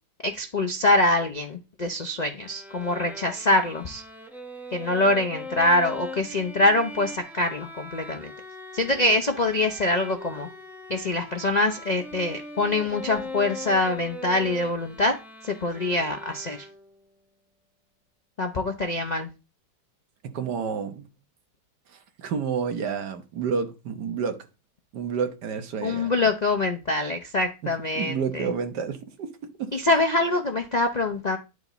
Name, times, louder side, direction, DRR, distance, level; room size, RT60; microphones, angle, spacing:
voice 1, 0.2-4.0 4.7-8.3 8.7-10.5 10.9-15.1 15.4-16.7 18.4-19.3 25.8-28.5 29.7-31.4, left 2 dB, 70° left, 0.4 m, -24 dB
Bowed string instrument, 2.4-17.0, left 1 dB, ahead, 0.8 m, -40 dB
voice 2, 20.2-21.1 21.9-24.5 24.9-26.1 27.6-29.3 29.6-29.7, right 6 dB, 70° right, 1.6 m, -30 dB
10.5 x 5.2 x 4.0 m
omnidirectional pair, 2.0 m